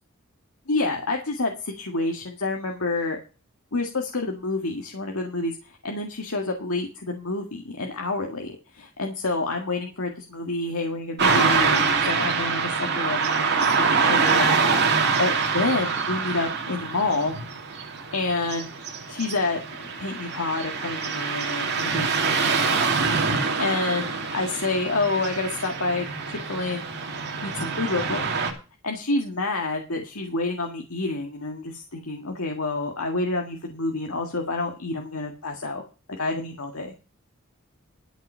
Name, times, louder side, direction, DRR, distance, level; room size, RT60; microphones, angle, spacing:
voice 1, 0.7-3.2 3.7-5.5 5.8-14.6 15.2-17.3 18.1-18.7 19.1-19.6 20.0-22.8 23.6-26.9 27.4-28.3 28.8-35.8 36.1-36.9, left 3 dB, 85° left, 2 dB, 1.8 m, -28 dB
Car passing by / Traffic noise roadway noise, 11.2-28.5, right 5 dB, 55° right, 2.5 m, -25 dB
12.5 x 7.8 x 5.6 m, 0.34 s
head